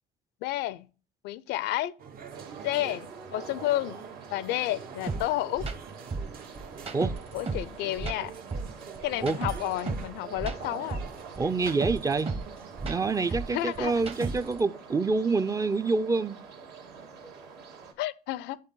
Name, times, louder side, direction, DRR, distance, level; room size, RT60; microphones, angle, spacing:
voice 1, 0.4-0.9 1.2-1.9 2.6-4.0 4.3-5.7 7.3-8.3 9.0-11.0 13.5-13.9 18.0-18.6, left 15 dB, 85° left, 0.5 m, -31 dB
sound 1, 2.0-14.5, right 6 dB, 60° right, 0.9 m, -47 dB
sound 2, 2.3-17.9, right 5 dB, 80° right, 1.8 m, -46 dB
sound 3, 5.1-5.2 5.6-5.8 6.1-7.7 8.0-10.1 10.4-12.5 12.8-14.6, right 3 dB, 35° right, 1.1 m, -33 dB
voice 2, 11.4-12.3 12.8-16.4, right 4 dB, 20° right, 0.4 m, -27 dB
10.5 x 3.8 x 3.7 m
cardioid pair, 110°, 17 cm